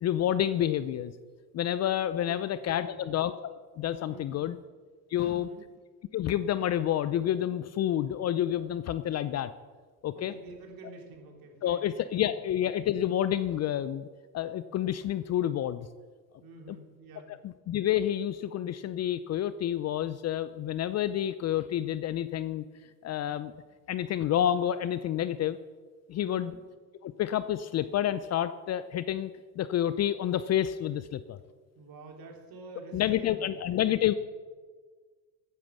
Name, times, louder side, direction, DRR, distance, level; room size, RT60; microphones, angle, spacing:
voice 1, 0.0-1.1 1.5-4.6 5.1-5.5 6.1-9.5 10.0-10.3 11.6-14.1 14.3-15.9 16.7-16.8 17.4-22.6 23.0-23.5 23.9-25.6 26.1-26.5 27.0-29.3 29.6-31.4 32.9-34.1, left 11 dB, 35° left, 14 dB, 0.5 m, -29 dB
voice 2, 2.1-3.1 4.1-4.5 5.2-5.7 10.1-12.4 16.4-17.3 26.2-26.6 31.8-34.2, right 2 dB, 45° right, 2 dB, 3.7 m, -48 dB
14.0 x 9.1 x 6.5 m, 1.5 s
supercardioid pair, 95°, 47 cm